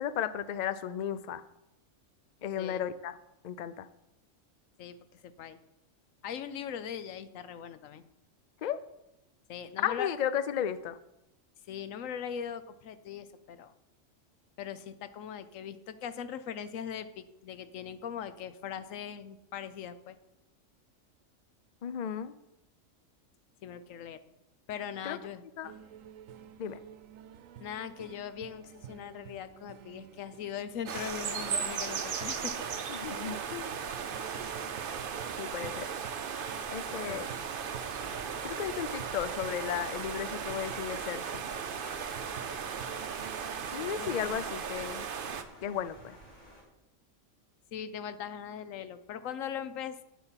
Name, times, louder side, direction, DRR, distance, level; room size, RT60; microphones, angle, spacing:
voice 1, 0.0-1.4 2.4-3.2 3.4-3.9 8.6-8.8 9.8-11.0 21.8-22.3 25.0-25.2 25.6-25.7 26.6-26.8 32.9-33.7 35.4-35.9 36.7-37.3 38.4-41.4 43.7-45.0 45.6-46.2, left 9 dB, 60° left, 14 dB, 0.4 m, -34 dB
voice 2, 4.8-5.6 6.2-8.0 9.5-10.1 11.7-13.7 14.6-20.2 23.6-24.2 24.7-25.4 27.6-32.5 37.0-37.2 44.0-44.4 47.7-50.0, left 8 dB, 85° left, 13 dB, 1.1 m, -40 dB
sound 1, 25.6-44.5, right 9 dB, 90° right, 1.0 m, -50 dB
sound 2, 30.8-45.4, right 6 dB, 50° right, 0.8 m, -36 dB
sound 3, 37.4-46.6, right 1 dB, 35° left, 3.4 m, -54 dB
8.4 x 7.9 x 5.7 m, 0.89 s
omnidirectional pair, 1.3 m